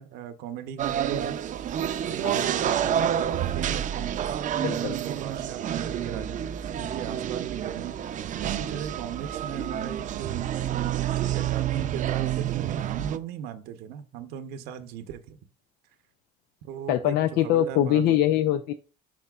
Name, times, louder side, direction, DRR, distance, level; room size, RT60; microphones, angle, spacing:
voice 1, 0.0-1.4 2.0-4.3 4.7-6.5 6.8-8.0 8.4-10.9 11.1-15.4 16.6-18.2, right 9 dB, 85° right, 0.9 m, -38 dB
sound 1, 0.8-13.2, right 10 dB, 55° right, 0.6 m, -29 dB
voice 2, 4.6-5.0 16.9-18.7, left 12 dB, 80° left, 0.5 m, -23 dB
10.5 x 4.3 x 2.4 m
cardioid pair, 90°, 16 cm